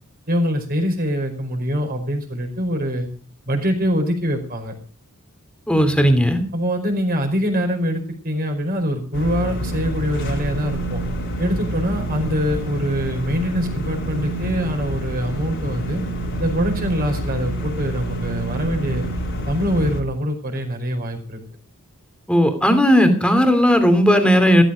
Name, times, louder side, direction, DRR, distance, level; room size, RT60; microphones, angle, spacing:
voice 1, 0.3-3.1 3.4-4.7 6.5-11.0 11.4-16.0 16.4-19.0 19.4-21.4, equal, 45° right, 3 dB, 5.0 m, -24 dB
voice 2, 5.7-6.4 22.3-24.6, equal, 5° left, 7 dB, 2.8 m, -15 dB
sound 1, 9.1-20.0, right 1 dB, 60° left, 3.8 m, -27 dB
15.5 x 14.0 x 5.1 m, 0.39 s
head